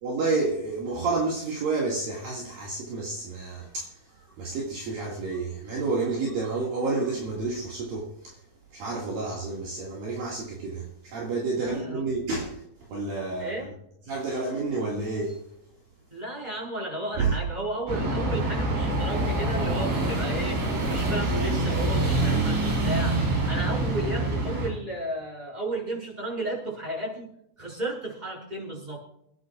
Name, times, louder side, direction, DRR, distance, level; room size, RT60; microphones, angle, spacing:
voice 1, 0.0-8.4 8.7-12.6 12.9-13.7 14.1-15.5 17.2-17.3, right 3 dB, 60° right, 3.6 m, -30 dB
voice 2, 11.6-12.0 13.4-13.7 16.1-27.3 27.6-29.0, right 1 dB, 10° right, 6.3 m, -33 dB
sound 1, 17.9-24.7, right 2 dB, 90° right, 6.5 m, -26 dB
28.5 x 10.0 x 2.4 m
omnidirectional pair, 4.9 m